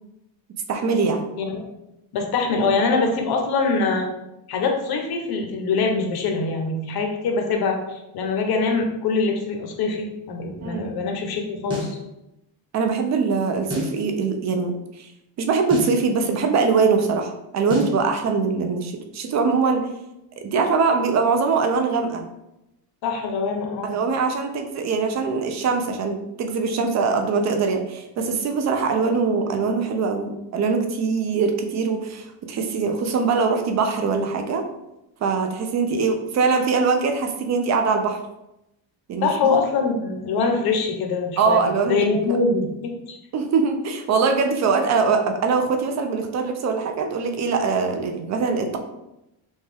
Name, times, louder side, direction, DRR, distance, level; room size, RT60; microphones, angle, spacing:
voice 1, 0.7-1.2 10.6-10.9 12.7-15.1 15.4-19.9 20.4-22.3 23.8-34.6 35.2-38.2 39.1-39.6 41.4-42.4 43.3-48.8, right 4 dB, 40° right, 5 dB, 0.4 m, -22 dB
voice 2, 2.1-4.1 4.5-12.0 23.0-23.9 26.7-26.8 39.2-43.2, left 4 dB, 55° left, 2 dB, 0.8 m, -24 dB
sound 1, 11.7-12.0 13.7-14.0 15.7-16.0 17.7-18.0, left 1 dB, 10° right, 0.9 m, -30 dB
5.4 x 2.3 x 3.3 m, 0.90 s
cardioid pair, 175°, 46 cm